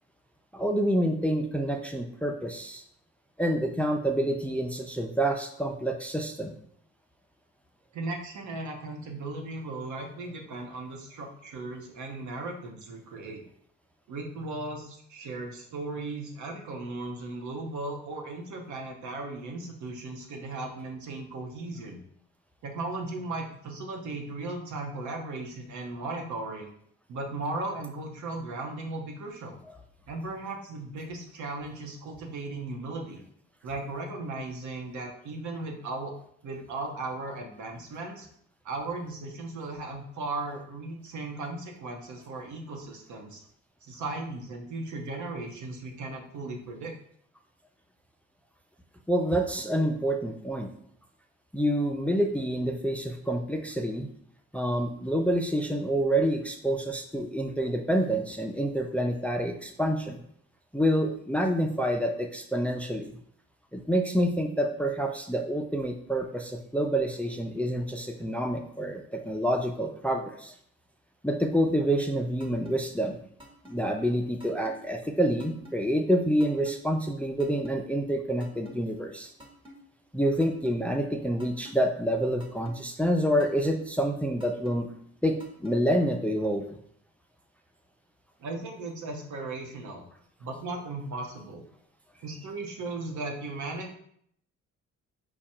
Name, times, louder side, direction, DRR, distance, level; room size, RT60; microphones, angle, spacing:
voice 1, 0.5-2.8 3.4-6.5 49.1-50.7 51.5-54.1 54.5-60.2 60.7-63.1 63.7-70.5 71.2-73.2 73.7-79.3 80.1-84.9 85.2-86.8, equal, 5° left, 3 dB, 0.4 m, -27 dB
voice 2, 7.9-13.4 14.1-22.0 22.6-26.7 27.1-29.6 30.1-33.2 33.6-36.1 36.4-38.3 38.6-43.4 43.8-46.9 88.4-90.0 90.4-91.6 92.2-93.9, right 2 dB, 70° right, 2 dB, 1.0 m, -37 dB
sound 1, 72.4-72.7 73.4-73.8 74.4-74.7 75.4-75.8 76.4-76.8 77.4-77.8 78.4-78.7 79.4-79.8 80.4-80.7 81.4-81.8 82.4-82.8 83.4-83.8 84.4-84.7 85.4-85.8, equal, 15° right, 1.2 m, -48 dB
4.8 x 2.3 x 4.3 m, 0.67 s
cardioid pair, 90°, 30 cm